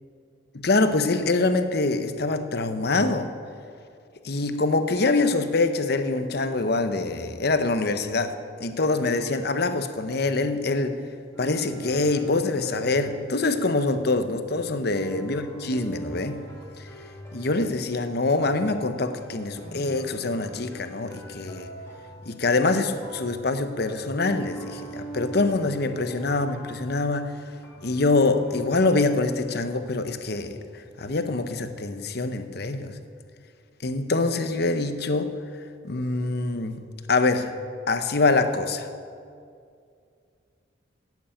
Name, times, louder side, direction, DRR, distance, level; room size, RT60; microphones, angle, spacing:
voice 1, 0.5-3.3 4.2-11.0 11.4-16.4 16.8-16.9 17.3-21.7 22.2-27.3 27.8-33.0 33.8-35.3 35.8-36.8 37.1-37.5 37.9-38.9, left 3 dB, 55° left, 9 dB, 0.8 m, -25 dB
sound 1, 11.3-29.9, right 2 dB, 15° left, 2.3 m, -42 dB
11.0 x 8.2 x 8.9 m, 2.3 s
head